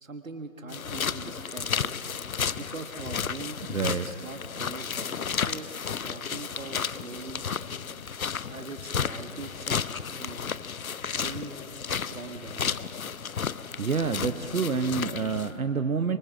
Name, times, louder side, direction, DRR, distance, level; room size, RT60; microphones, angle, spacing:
voice 1, 0.0-1.9 2.5-3.6 4.0-5.2 5.5-5.7 6.0-7.5 8.5-10.4 11.1-11.6 12.1-12.8, right 3 dB, 70° right, 6 dB, 1.6 m, -41 dB
sound 1, 0.7-15.5, left 7 dB, 85° left, 0.7 m, -33 dB
voice 2, 3.7-4.1 13.8-16.2, right 5 dB, 90° right, 8 dB, 0.9 m, -27 dB
25.5 x 24.0 x 5.0 m, 3.0 s
figure-of-eight pair, 160°, 41 cm